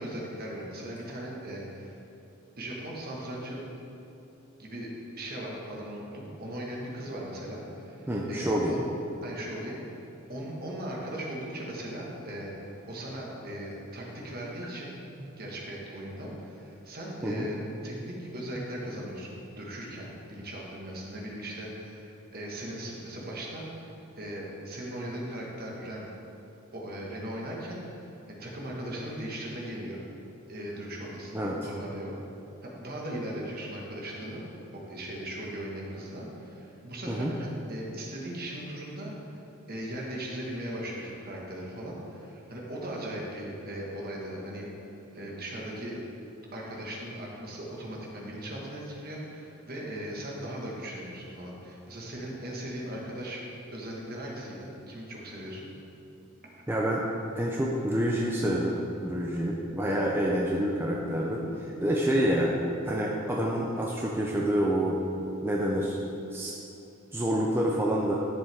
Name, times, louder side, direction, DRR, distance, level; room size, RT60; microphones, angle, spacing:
voice 1, 0.0-2.0 2.6-3.6 4.6-8.8 9.2-9.8 10.3-15.0 15.4-17.6 17.8-26.1 26.7-30.0 30.5-32.1 32.6-39.4 39.7-44.7 45.1-46.0 46.5-53.4 53.7-55.7, right 1 dB, 45° right, -3 dB, 1.6 m, -38 dB
voice 2, 8.1-8.7 17.2-17.5 31.3-31.6 37.1-37.3 56.7-57.0 57.3-62.5 62.8-65.0 65.4-66.0 66.3-66.5 67.1-68.1, equal, 10° right, -3 dB, 0.5 m, -27 dB
10.5 x 6.9 x 3.5 m, 2.9 s
head